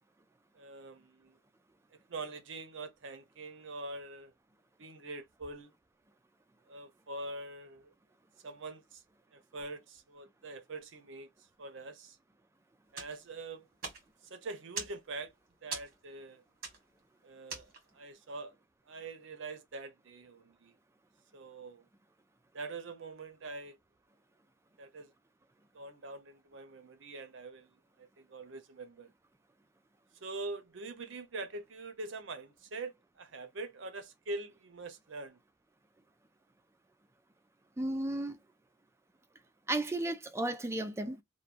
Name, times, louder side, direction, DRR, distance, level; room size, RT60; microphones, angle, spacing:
voice 1, 0.5-1.4 2.1-4.3 4.8-5.7 6.7-7.9 8.4-9.0 9.3-11.3 11.6-12.2 12.9-13.7 14.2-15.3 15.6-16.4 17.2-18.5 18.9-20.7 21.3-21.9 22.5-23.8 24.8-25.1 25.7-29.1 30.2-35.4, right 2 dB, 65° right, 0.6 m, -44 dB
sound 1, 12.9-18.1, right 4 dB, 50° right, 1.4 m, -45 dB
voice 2, 37.8-38.4 39.7-41.2, right 1 dB, 15° right, 0.3 m, -34 dB
3.0 x 2.2 x 2.4 m
head